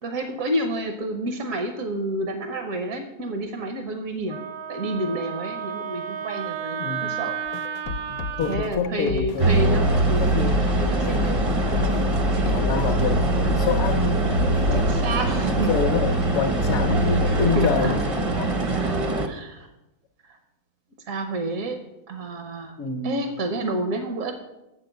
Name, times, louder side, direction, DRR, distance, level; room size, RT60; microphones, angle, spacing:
voice 1, 0.0-4.4 4.7-7.3 8.5-10.3 10.8-11.3 12.3-12.6 14.7-15.7 17.2-17.9 18.8-19.0 19.2-19.7 20.2-20.4 21.0-21.8 22.1-22.8 23.0-24.3, right 2 dB, 65° right, 5 dB, 1.3 m, -29 dB
Wind instrument woodwind instrument, 4.3-8.7, right 8 dB, 85° right, 1.3 m, -32 dB
voice 2, 6.8-7.2 8.4-10.6 11.0-11.4 12.5-14.3 14.6-14.8 15.5-18.5 22.8-23.2, left 6 dB, 60° left, 4 dB, 1.0 m, -27 dB
sound 1, 7.5-15.0, left 5 dB, 80° left, 1.1 m, -33 dB
sound 2, 9.4-19.3, right 2 dB, 30° right, 0.6 m, -22 dB
7.5 x 6.1 x 7.8 m, 0.96 s
omnidirectional pair, 1.6 m